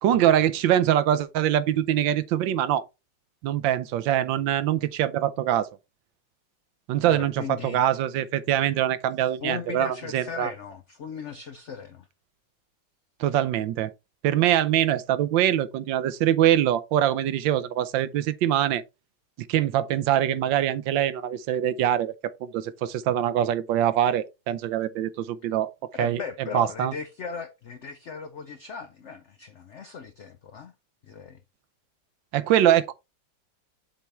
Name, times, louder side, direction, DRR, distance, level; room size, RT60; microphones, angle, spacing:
voice 1, 0.0-2.8 3.4-5.7 6.9-10.5 13.2-13.9 14.2-18.8 19.4-25.7 26.0-26.2 26.5-26.9 32.3-32.9, right 11 dB, 80° right, 1.3 m, -23 dB
voice 2, 7.1-7.9 9.2-12.1 25.9-30.7 31.0-31.4, left 6 dB, 85° left, 0.6 m, -37 dB
7.4 x 3.5 x 4.2 m
omnidirectional pair, 2.1 m